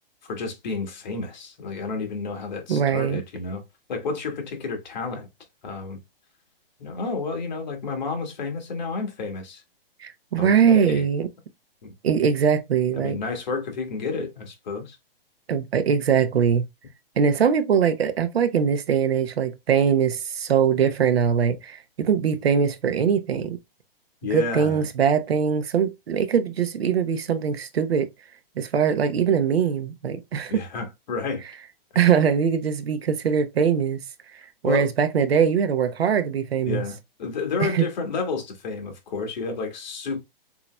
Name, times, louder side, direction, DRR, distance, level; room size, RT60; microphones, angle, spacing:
voice 1, 0.2-3.6 3.9-5.3 5.6-6.0 6.8-9.6 10.4-11.0 11.8-11.9 12.9-15.0 24.2-24.9 30.5-31.4 34.6-34.9 36.6-40.2, left 4 dB, 50° left, 1.6 m, -30 dB
voice 2, 2.7-3.2 10.0-11.3 12.0-13.2 15.5-16.6 17.2-23.6 24.3-28.1 28.6-30.6 31.9-34.0 34.6-36.8 37.6-37.8, right 7 dB, 85° right, 1.0 m, -22 dB
7.0 x 2.9 x 2.2 m
hypercardioid pair, 170°, 30 cm